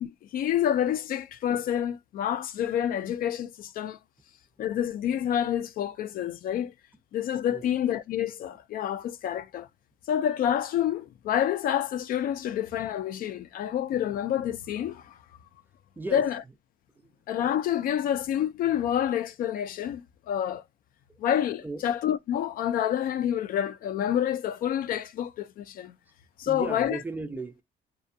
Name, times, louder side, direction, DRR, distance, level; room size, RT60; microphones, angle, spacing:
voice 1, 0.0-4.0 4.6-6.7 7.1-9.7 10.1-15.2 16.1-16.4 17.3-20.6 21.2-25.9 26.4-27.0, left 10 dB, 60° left, 0.4 m, -28 dB
voice 2, 16.0-16.3 17.0-17.1 21.1-21.2 21.6-21.9 26.4-27.6, right 3 dB, 10° right, 0.3 m, -36 dB
2.4 x 2.2 x 2.6 m
cardioid pair, 110°, 17 cm